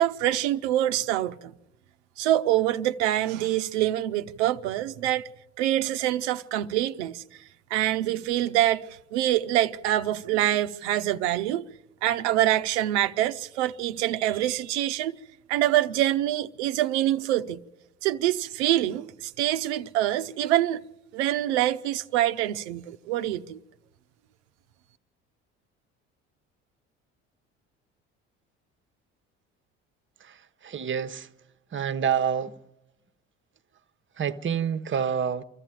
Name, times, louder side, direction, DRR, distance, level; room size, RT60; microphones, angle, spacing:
voice 1, 0.0-1.5 2.2-5.3 5.6-7.2 7.7-11.7 12.0-15.2 15.5-17.6 18.0-20.9 21.1-23.6, right 13 dB, 80° right, 0.8 m, -25 dB
voice 2, 30.6-31.3 31.7-32.5 34.2-35.4, right 7 dB, 35° right, 1.0 m, -27 dB
25.0 x 14.0 x 9.0 m
hypercardioid pair, 60°, 33 cm